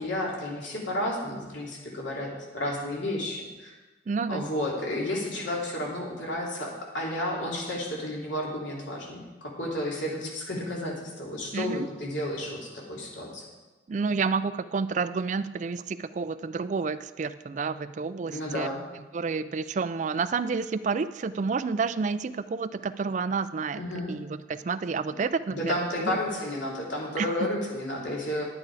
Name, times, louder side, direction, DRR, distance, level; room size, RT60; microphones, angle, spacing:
voice 1, 0.0-3.7 4.3-13.4 18.3-18.8 23.7-24.1 25.5-28.4, left 1 dB, 80° left, -3 dB, 3.0 m, -32 dB
voice 2, 4.1-4.4 11.5-11.9 13.9-18.7 19.1-23.8 24.1-26.2 27.2-27.5, right 4 dB, 40° right, 13 dB, 0.3 m, -30 dB
10.5 x 8.9 x 4.8 m, 1.2 s
head